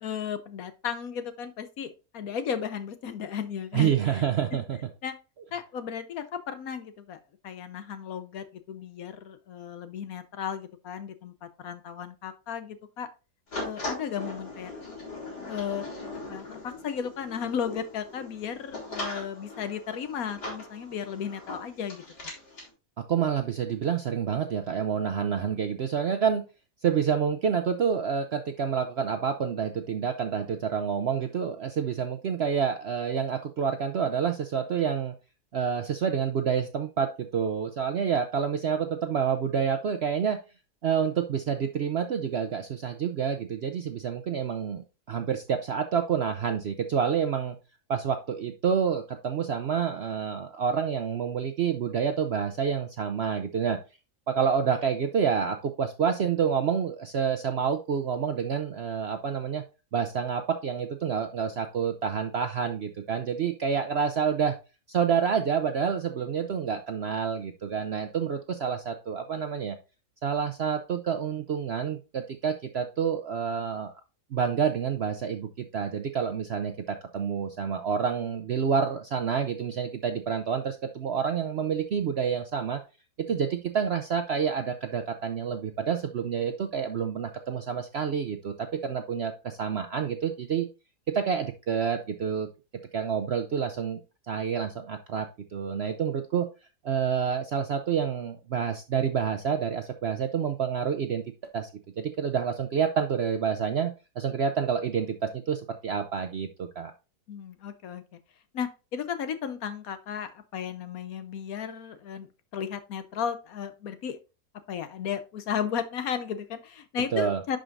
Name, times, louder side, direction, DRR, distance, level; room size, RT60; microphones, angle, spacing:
voice 1, 0.0-4.2 4.5-4.6 5.0-5.1 5.5-13.1 13.6-14.7 15.5-15.9 16.3-22.3 107.3-108.2 108.5-114.2 114.7-117.6, left 8 dB, 65° left, 11 dB, 1.2 m, -35 dB
voice 2, 3.7-4.8 23.1-26.4 26.8-35.1 35.5-40.4 40.8-47.5 47.9-53.8 54.3-59.6 59.9-64.5 64.9-69.8 70.2-73.9 74.3-82.8 83.2-90.7 91.1-92.5 92.9-94.0 94.3-95.3 95.5-96.5 96.8-101.2 101.5-101.7 102.0-106.9 117.1-117.4, right 7 dB, 60° right, 7 dB, 0.6 m, -28 dB
sound 1, 13.5-22.7, left 2 dB, 85° left, 3.7 m, -40 dB
11.0 x 5.1 x 2.5 m, 0.30 s
omnidirectional pair, 1.7 m